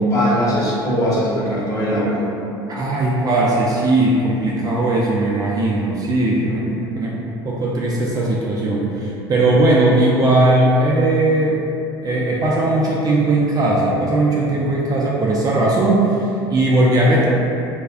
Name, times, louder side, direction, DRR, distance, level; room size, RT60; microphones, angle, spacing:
voice 1, 0.0-2.2, equal, 25° left, -8 dB, 0.9 m, -19 dB
voice 2, 2.7-11.6 12.0-17.3, right 2 dB, 30° right, -4 dB, 0.4 m, -18 dB
2.3 x 2.1 x 3.4 m, 2.8 s
hypercardioid pair, 70°, 13 cm